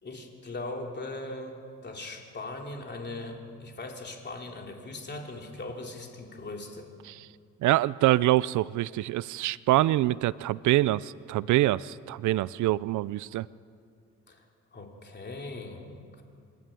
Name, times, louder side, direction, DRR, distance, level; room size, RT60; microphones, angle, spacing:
voice 1, 0.0-6.9 14.3-14.4 14.7-15.8 16.2-16.3, left 2 dB, 35° left, 2 dB, 3.3 m, -39 dB
voice 2, 7.6-13.5, right 16 dB, 75° right, 20 dB, 0.5 m, -25 dB
27.0 x 12.0 x 9.1 m, 2.3 s
cardioid pair, 90°, 30 cm